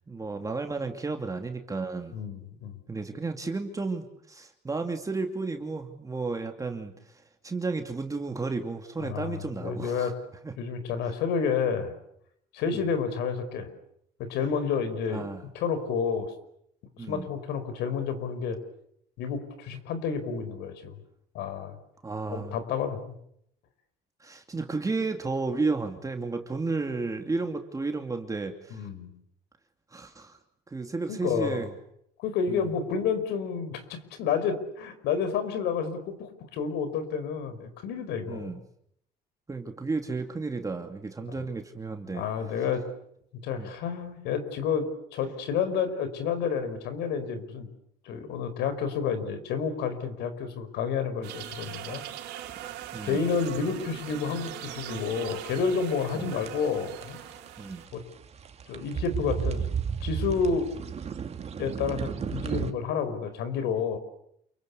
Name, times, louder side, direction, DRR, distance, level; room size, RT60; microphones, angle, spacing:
voice 1, 0.1-2.1 2.9-10.1 10.4-10.5 11.0-11.1 12.7-12.9 15.1-15.4 17.0-17.3 22.0-22.6 24.2-28.9 29.9-30.4 30.7-31.7 32.5-32.7 38.3-38.6 39.5-42.2 43.5-43.7 52.9-53.2 56.1-56.4 57.6-57.8, right 3 dB, 20° right, 4 dB, 2.7 m, -33 dB
voice 2, 2.1-2.7 9.0-10.1 10.6-11.9 12.5-13.7 14.2-15.3 15.5-16.3 17.1-18.6 19.2-21.0 21.3-21.7 22.3-23.0 28.7-29.1 31.1-31.7 32.2-38.6 41.3-41.5 42.1-42.8 43.4-47.7 48.1-52.0 53.0-57.2 57.9-58.0 58.7-59.6 60.0-60.7 61.6-64.0, left 6 dB, 85° left, 11 dB, 5.2 m, -30 dB
sound 1, 51.2-57.9, right 11 dB, 85° right, 3.6 m, -41 dB
sound 2, 52.4-62.7, right 7 dB, 40° right, 2.4 m, -34 dB
28.5 x 24.0 x 8.4 m, 0.74 s
cardioid pair, 110°, 17 cm